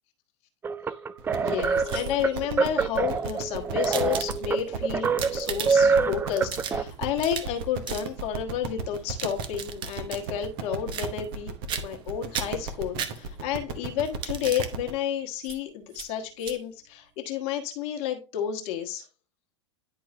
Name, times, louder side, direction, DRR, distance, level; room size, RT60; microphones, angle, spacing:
sound 1, 0.6-6.8, right 5 dB, 15° right, 0.4 m, -26 dB
sound 2, 1.2-14.9, right 4 dB, 55° right, 1.2 m, -36 dB
voice 1, 1.4-11.5 11.8-19.1, left 9 dB, 45° left, 1.4 m, -31 dB
sound 3, 1.6-2.3 3.1-4.7 5.0-6.0 6.3-7.6 7.9-8.1 8.9-10.3 10.9-11.4 11.7-12.1 12.3-13.6 14.0-14.7 15.4-15.6 15.9-16.1 16.4-16.6, right 8 dB, 35° right, 0.9 m, -36 dB
10.0 x 4.6 x 3.3 m
figure-of-eight pair, 90°, 15 cm